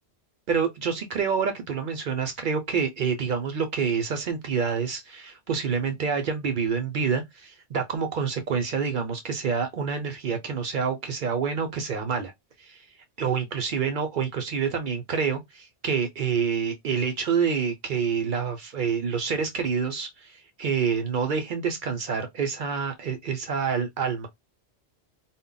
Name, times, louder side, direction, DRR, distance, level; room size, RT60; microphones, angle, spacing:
voice 1, 0.5-12.3 12.6-12.8 13.2-24.3, right 6 dB, 60° right, 0.6 m, -27 dB
2.1 x 2.0 x 3.7 m
omnidirectional pair, 1.2 m